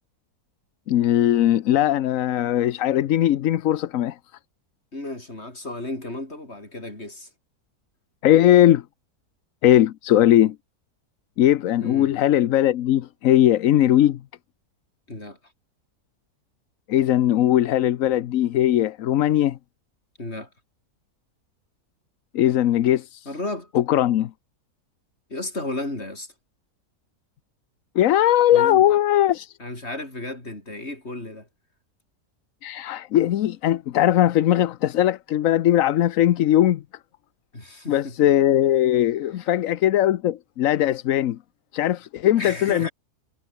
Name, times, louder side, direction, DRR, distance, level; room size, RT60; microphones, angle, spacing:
voice 1, 0.9-4.2 8.2-8.8 9.6-10.5 11.4-14.2 16.9-19.6 22.3-23.3 23.7-24.3 28.0-29.5 32.6-36.8 37.9-41.4 41.7-42.9, left 12 dB, 65° left, 1.0 m, -19 dB
voice 2, 4.9-7.3 11.8-12.1 15.1-15.4 20.2-20.5 23.3-23.7 25.3-26.3 28.5-28.8 29.6-31.5 37.5-38.2 42.4-42.9, left 2 dB, 45° left, 6.0 m, -33 dB
omnidirectional pair, 1.6 m